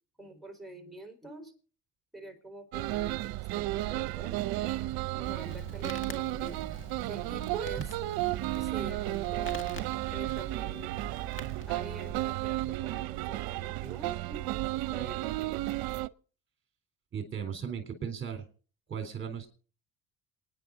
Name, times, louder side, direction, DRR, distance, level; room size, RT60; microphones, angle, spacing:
voice 1, 0.2-1.5 2.1-6.6 7.1-7.8 8.5-9.5 10.1-10.9 11.7-15.6, right 2 dB, ahead, 3 dB, 4.5 m, -46 dB
sound 1, 2.7-16.1, right 17 dB, 70° right, 0.7 m, -33 dB
Crackle, 5.2-12.1, left 3 dB, 30° left, 1.9 m, -47 dB
voice 2, 17.1-18.5 18.9-19.5, right 7 dB, 30° right, 6 dB, 3.7 m, -36 dB
27.0 x 10.0 x 3.9 m, 0.41 s
cardioid pair, 100°, 39 cm